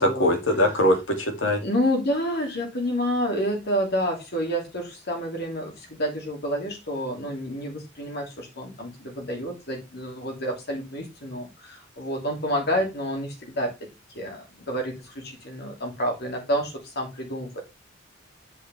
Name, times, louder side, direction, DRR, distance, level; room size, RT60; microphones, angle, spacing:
voice 1, 0.0-1.6, left 1 dB, 75° left, 2.8 m, -22 dB
voice 2, 1.6-13.7 14.1-17.6, equal, 60° left, 2.9 m, -29 dB
8.6 x 6.4 x 3.5 m
head